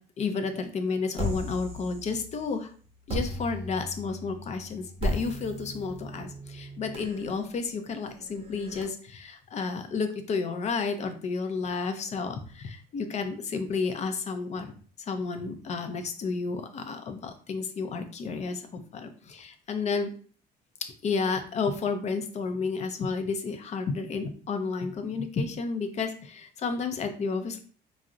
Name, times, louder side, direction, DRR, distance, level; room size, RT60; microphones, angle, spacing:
voice 1, 0.2-2.7 3.1-14.7 15.1-20.1 21.0-27.6, left 4 dB, 40° left, 7 dB, 0.5 m, -31 dB
sound 1, 1.2-2.5 3.1-8.8, equal, 35° right, 0.8 m, -36 dB
2.4 x 2.0 x 3.7 m, 0.43 s
cardioid pair, 110°, 17 cm